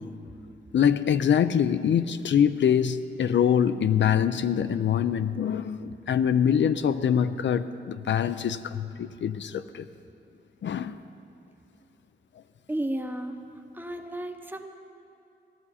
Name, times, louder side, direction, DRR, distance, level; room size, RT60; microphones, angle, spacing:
voice 1, 0.7-9.9 10.6-11.0, left 8 dB, 75° left, 0.4 m, -24 dB
voice 2, 12.7-13.4 13.7-14.7, right 1 dB, 10° right, 0.7 m, -32 dB
16.5 x 12.0 x 4.2 m
wide cardioid pair, 110°, 19 cm